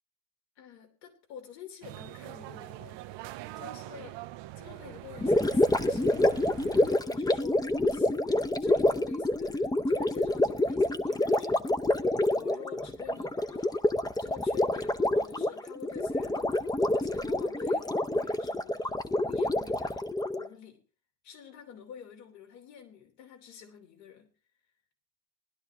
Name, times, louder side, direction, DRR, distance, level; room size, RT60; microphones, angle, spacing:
voice 1, 0.6-3.0 3.5-4.2 4.6-13.8 14.2-20.1 20.4-20.8 21.2-24.3, left 7 dB, 80° left, 2 dB, 3.2 m, -48 dB
sound 1, 1.8-7.0, right 16 dB, 55° right, 0.8 m, -43 dB
Gurgling, 5.2-20.5, left 1 dB, 10° left, 0.8 m, -27 dB
19.5 x 11.5 x 2.9 m, 0.33 s
hypercardioid pair, 70°, 50 cm